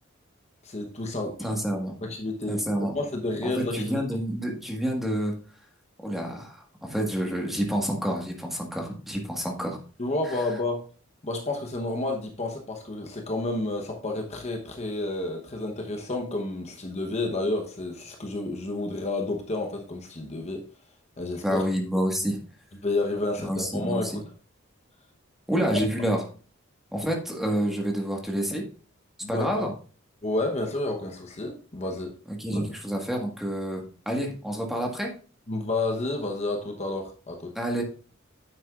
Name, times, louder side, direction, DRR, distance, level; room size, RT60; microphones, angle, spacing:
voice 1, 0.6-1.6 2.0-2.6 2.9-4.0 10.0-10.8 11.2-20.6 21.2-21.7 22.8-24.2 25.6-25.7 29.2-29.7 30.2-32.1 32.5-32.6 35.5-37.5, left 2 dB, 35° left, 2 dB, 0.9 m, -30 dB
voice 2, 1.4-1.9 2.5-2.9 3.4-5.3 6.0-9.8 10.2-10.4 21.4-22.4 23.4-24.1 25.5-26.2 26.9-28.6 29.3-29.7 32.3-35.1 37.5-37.8, equal, ahead, 0 dB, 1.5 m, -28 dB
9.6 x 7.4 x 2.4 m, 0.39 s
head